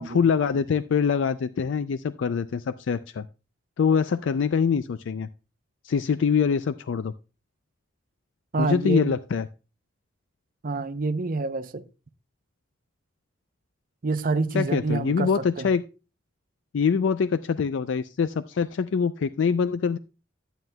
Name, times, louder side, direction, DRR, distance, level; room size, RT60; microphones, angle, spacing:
voice 1, 0.0-3.2 3.8-5.3 5.8-7.1 8.6-9.4 14.5-15.8 16.7-20.0, left 6 dB, 75° left, 0.4 m, -24 dB
voice 2, 8.5-9.1 10.6-11.8 14.0-15.7, right 3 dB, 45° right, 0.6 m, -27 dB
13.0 x 9.1 x 2.2 m
head